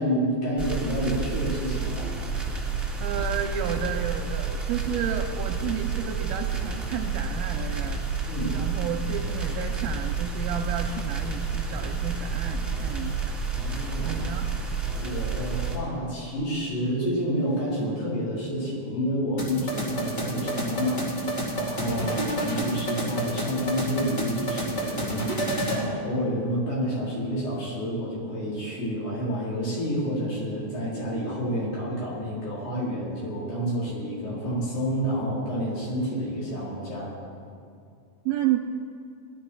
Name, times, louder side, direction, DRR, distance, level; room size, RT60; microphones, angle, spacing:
voice 1, 0.0-2.1 8.3-8.6 13.5-14.1 15.0-21.0 21.5-22.1 22.4-37.1, equal, 70° left, -7 dB, 6.4 m, -29 dB
sound 1, 0.6-15.8, right 5 dB, 5° right, 1.3 m, -30 dB
voice 2, 3.0-8.0 8.5-13.3 14.0-14.5 21.9-22.2 38.3-38.6, right 8 dB, 80° right, 4 dB, 2.2 m, -31 dB
sound 2, 19.4-25.8, right 1 dB, 30° left, 2.6 m, -29 dB
19.5 x 11.5 x 4.7 m, 2.4 s
omnidirectional pair, 4.7 m